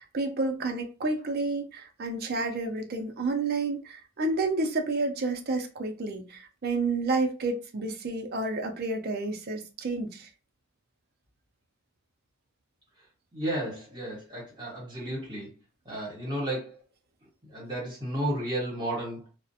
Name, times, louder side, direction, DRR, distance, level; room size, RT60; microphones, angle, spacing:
voice 1, 0.0-10.3, right 3 dB, 50° right, 0.5 m, -30 dB
voice 2, 13.3-15.5 15.8-16.8 17.5-19.2, right 1 dB, 25° right, 1.4 m, -33 dB
2.4 x 2.1 x 2.7 m
head